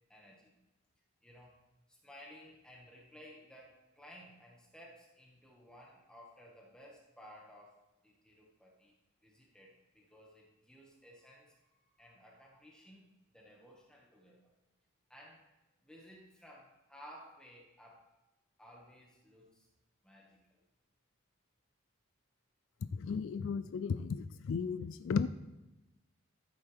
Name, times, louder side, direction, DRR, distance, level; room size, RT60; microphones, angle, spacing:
voice 1, 0.1-0.5 1.2-1.6 1.9-9.0 9.2-14.5 15.1-15.4 15.8-18.1 18.6-19.7 20.0-20.6, equal, 5° left, -3 dB, 1.7 m, -57 dB
voice 2, 22.9-25.3, left 5 dB, 65° left, 13 dB, 0.3 m, -35 dB
14.0 x 7.9 x 3.5 m, 1.0 s
head